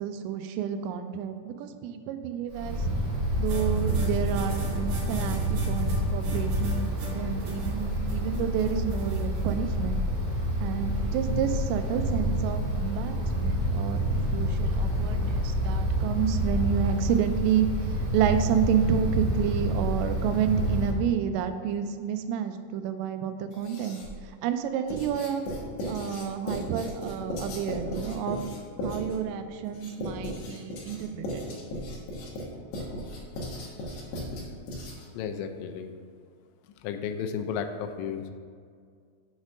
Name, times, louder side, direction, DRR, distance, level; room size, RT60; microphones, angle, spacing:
voice 1, 0.0-2.8 3.4-10.0 10.6-17.7 18.1-25.4 25.9-28.5 28.8-31.4 34.6-34.7, right 8 dB, 90° right, 8 dB, 2.8 m, -30 dB
Wind, 2.5-20.9, equal, 40° right, 2.6 m, -28 dB
sound 1, 3.5-9.5, right 1 dB, 60° right, 2.9 m, -42 dB
Writing, 23.5-24.2 24.9-35.2, left 1 dB, 65° left, 2.0 m, -36 dB
voice 2, 35.1-35.9 36.8-38.3, left 7 dB, 85° left, 7 dB, 2.8 m, -33 dB
7.0 x 4.3 x 6.1 m, 2.1 s
omnidirectional pair, 5.0 m